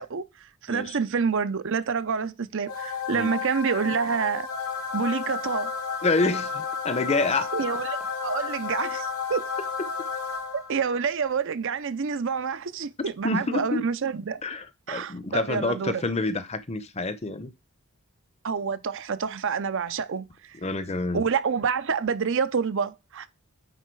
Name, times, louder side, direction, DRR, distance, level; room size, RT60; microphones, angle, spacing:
voice 1, 0.0-4.5 4.9-5.7 7.1-7.2 7.5-8.0 8.2-9.5 10.5-14.4 14.9-16.0 18.4-20.6 21.1-23.3, right 6 dB, 60° right, 0.6 m, -28 dB
sound 1, 2.7-10.9, left 5 dB, 90° left, 2.1 m, -32 dB
voice 2, 6.0-7.5 13.2-13.8 14.4-17.5 20.6-21.2, left 3 dB, 30° left, 0.7 m, -27 dB
9.2 x 4.1 x 4.6 m
head